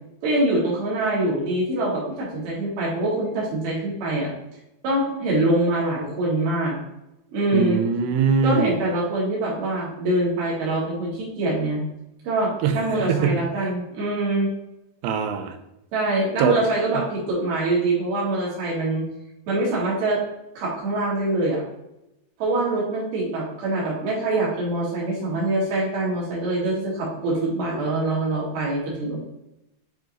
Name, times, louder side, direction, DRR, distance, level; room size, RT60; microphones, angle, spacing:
voice 1, 0.2-4.3 4.8-6.8 7.3-7.8 8.4-11.8 12.2-14.5 15.9-19.1 19.5-20.2 20.6-21.6 22.4-29.2, right 2 dB, 70° right, -5 dB, 4.1 m, -24 dB
voice 2, 7.5-8.7 12.6-13.7 15.0-15.6 16.4-16.6 16.9-17.0, right 6 dB, 90° right, 6 dB, 2.8 m, -22 dB
8.0 x 4.6 x 3.0 m, 0.88 s
omnidirectional pair, 4.7 m